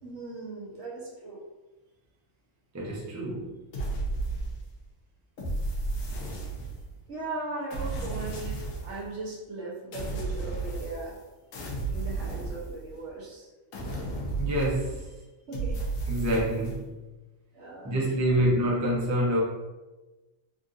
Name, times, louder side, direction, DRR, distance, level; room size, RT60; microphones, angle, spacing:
voice 1, 0.0-1.4 7.1-11.2 11.9-13.5 15.5-15.8 17.5-18.3, right 2 dB, 65° right, -4 dB, 1.1 m, -38 dB
voice 2, 2.7-3.6 14.4-15.1 16.1-16.9 17.8-19.4, right 1 dB, 25° right, -4 dB, 0.3 m, -27 dB
sound 1, 3.7-4.8 5.4-7.0 7.7-9.0 9.9-11.2 11.5-13.1 13.7-15.1 15.5-16.8, right 3 dB, 80° left, 1.1 m, -33 dB
3.4 x 2.5 x 2.6 m, 1.1 s
omnidirectional pair, 1.4 m